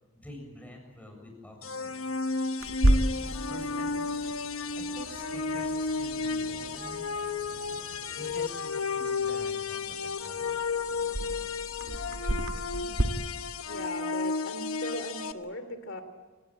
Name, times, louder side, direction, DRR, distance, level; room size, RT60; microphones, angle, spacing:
voice 1, 0.1-2.0 2.8-3.0 3.5-4.1 4.8-7.1 8.2-10.6, left 1 dB, 5° left, 1 dB, 7.0 m, -47 dB
sound 1, 1.6-15.3, left 4 dB, 85° left, 1.1 m, -33 dB
Clock, 2.6-13.0, right 1 dB, 80° right, 1.7 m, -33 dB
sound 2, 3.1-8.5, equal, 25° right, 7.0 m, -52 dB
voice 2, 13.6-16.0, left 1 dB, 60° left, 10 dB, 3.1 m, -38 dB
28.5 x 17.5 x 8.9 m, 1.4 s
head